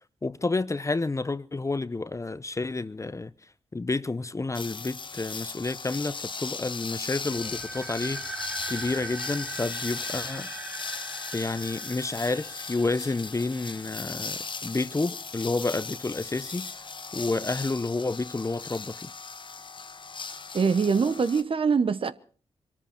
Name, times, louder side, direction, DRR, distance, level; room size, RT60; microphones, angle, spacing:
voice 1, 0.2-3.3 3.7-10.5 11.3-16.7 17.1-19.1, left 3 dB, 25° left, 0.8 m, -30 dB
sound 1, 4.5-21.4, left 4 dB, 45° left, 1.1 m, -38 dB
sound 2, 7.2-14.1, right 3 dB, 20° right, 3.7 m, -41 dB
voice 2, 20.5-22.1, right 5 dB, 50° right, 1.0 m, -23 dB
22.5 x 13.5 x 4.5 m
supercardioid pair, 50°, 12 cm